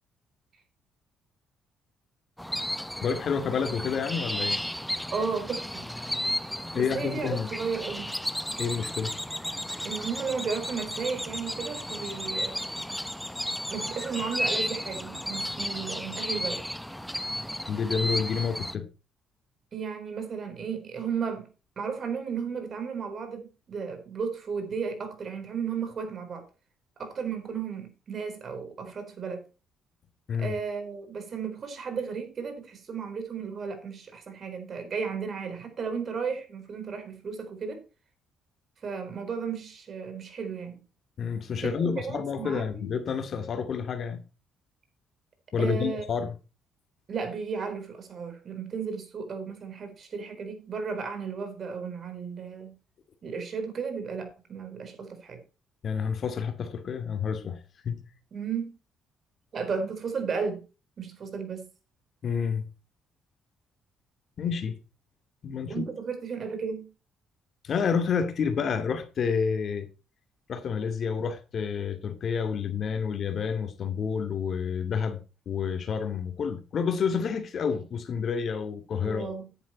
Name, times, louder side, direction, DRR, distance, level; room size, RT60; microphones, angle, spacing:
sound 1, 2.4-18.8, equal, 5° left, 0.8 m, -33 dB
voice 1, 3.0-4.6 6.7-7.5 8.6-9.1 17.7-18.9 30.3-30.5 41.2-44.2 45.5-46.3 55.8-57.6 57.8-58.0 62.2-62.6 64.4-64.7 65.4-65.9 67.6-69.9 70.5-79.3, left 6 dB, 55° left, 2.3 m, -29 dB
voice 2, 5.1-5.9 6.7-8.1 9.8-12.6 13.7-16.6 19.7-21.5 21.8-26.4 27.0-29.4 30.4-37.8 38.8-40.8 41.6-42.9 45.6-46.0 47.1-52.8 53.2-55.4 58.3-58.8 59.5-60.6 61.0-61.7 65.7-66.9 79.0-79.5, right 5 dB, 50° right, 4.2 m, -34 dB
10.0 x 9.0 x 4.4 m
supercardioid pair, 70°, 0 cm